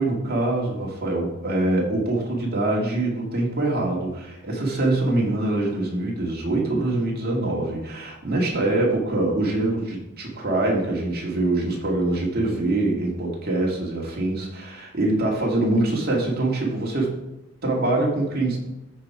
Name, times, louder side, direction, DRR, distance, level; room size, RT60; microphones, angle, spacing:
voice 1, 0.0-17.1 17.6-18.7, right 2 dB, 45° right, -2 dB, 2.3 m, -24 dB
13.0 x 4.5 x 4.8 m, 0.90 s
head